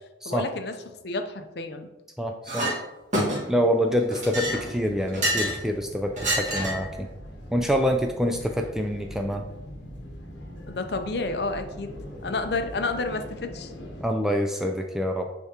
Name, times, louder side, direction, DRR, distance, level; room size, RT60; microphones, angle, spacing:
voice 1, 0.3-0.7 1.0-1.9 10.7-11.9 12.2-13.7, left 3 dB, 55° left, 7 dB, 0.5 m, -30 dB
voice 2, 2.2-2.7 3.5-7.1 7.5-9.4 14.0-15.3, equal, ahead, 3 dB, 0.3 m, -26 dB
Chink clink, 2.5-2.8 3.1-3.6 4.1-5.6 6.2-6.9, equal, 40° right, 1.7 m, -27 dB
sound 1, 3.6-14.1, equal, 75° left, 0.9 m, -42 dB
9.6 x 3.5 x 2.9 m, 1.0 s
head